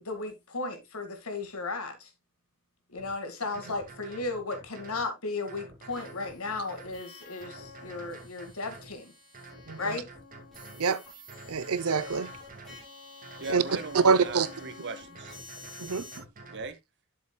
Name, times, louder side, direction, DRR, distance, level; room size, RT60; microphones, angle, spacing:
voice 1, 0.0-2.1 2.9-9.1 9.8-10.0 13.7-13.8, left 3 dB, 70° left, 2.1 m, -35 dB
sound 1, 3.0-3.1 3.5-5.1 5.5-7.0 7.4-8.9 9.3-10.9 11.3-12.8 13.2-14.7 15.1-16.7, right 2 dB, 40° right, 2.1 m, -48 dB
sound 2, 5.9-16.2, left 3 dB, ahead, 6.3 m, -49 dB
voice 2, 9.7-10.0 10.8-11.0 11.5-12.3 13.5-13.6 13.9-14.5 15.8-16.2, right 5 dB, 75° right, 0.7 m, -25 dB
voice 3, 13.4-15.4 16.5-16.8, right 3 dB, 55° right, 1.4 m, -39 dB
11.5 x 7.1 x 2.3 m
head